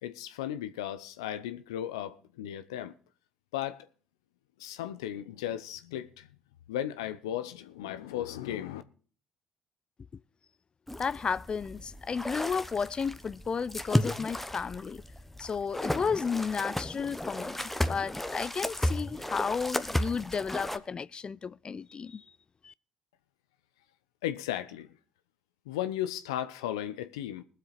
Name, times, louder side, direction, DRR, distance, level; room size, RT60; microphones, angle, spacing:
voice 1, 0.0-2.9 3.5-3.9 4.6-6.3 6.7-8.8 24.2-24.9 25.7-27.4, left 11 dB, 85° left, 0.7 m, -35 dB
sound 1, 10.9-20.8, left 1 dB, 10° left, 1.1 m, -34 dB
voice 2, 11.0-15.0 15.4-17.6 17.9-22.2 22.6-22.7, left 5 dB, 40° left, 0.5 m, -33 dB
20.5 x 7.5 x 4.3 m
hypercardioid pair, 55°, 3 cm